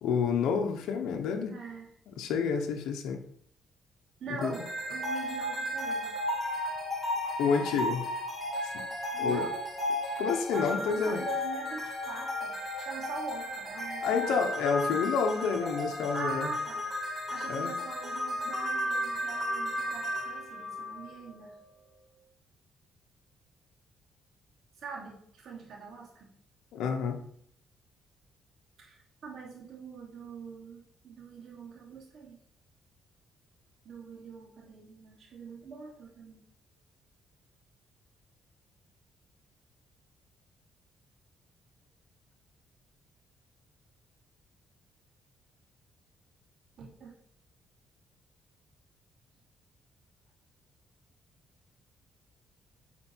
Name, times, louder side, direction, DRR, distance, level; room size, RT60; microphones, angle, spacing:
voice 1, 0.0-1.6 2.2-3.2 4.4-4.5 7.4-8.0 8.7-8.9 9.2-9.5 10.2-11.2 14.0-16.5 17.5-17.7 26.7-27.2, left 6 dB, 85° left, 3 dB, 0.9 m, -29 dB
voice 2, 1.5-1.9 4.2-6.1 9.1-9.6 10.5-14.4 16.1-16.8 17.3-21.5 24.7-26.3 28.8-32.4 33.8-36.4 46.8-47.1, right 5 dB, 65° right, -3 dB, 3.0 m, -43 dB
sound 1, 4.4-21.6, left 1 dB, 10° left, 3.0 m, -34 dB
8.6 x 4.5 x 4.5 m, 0.66 s
cardioid pair, 90°, 0 cm